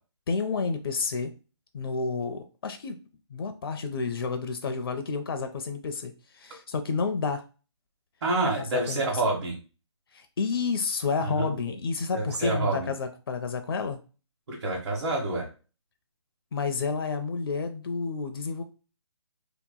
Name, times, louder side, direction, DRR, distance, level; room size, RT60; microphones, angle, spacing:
voice 1, 0.3-1.3 1.7-3.0 3.3-7.4 8.6-9.0 10.1-14.0 16.5-18.6, left 5 dB, 50° left, 7 dB, 0.5 m, -30 dB
voice 2, 8.2-9.6 11.2-11.6 12.1-12.9 14.5-15.5, right 2 dB, 60° right, -4 dB, 1.2 m, -28 dB
3.0 x 2.3 x 3.7 m, 0.34 s
hypercardioid pair, 155°, 15 cm